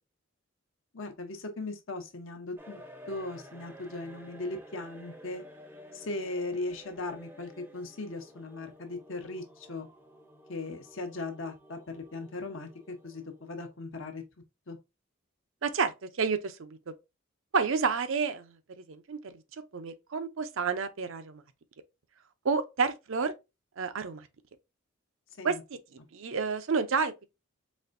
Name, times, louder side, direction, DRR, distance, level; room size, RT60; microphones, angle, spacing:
voice 1, 0.9-2.8 3.1-5.4 5.9-9.9 10.5-14.2 14.7-14.8 25.4-25.6, left 2 dB, 65° left, 0.9 m, -38 dB
sound 1, 2.6-13.8, equal, 10° right, 0.6 m, -52 dB
voice 2, 15.6-16.8 17.5-19.4 19.7-21.4 22.4-23.3 23.8-24.3 25.4-25.6 26.1-27.1, right 5 dB, 70° right, 0.5 m, -30 dB
4.1 x 3.3 x 2.6 m
head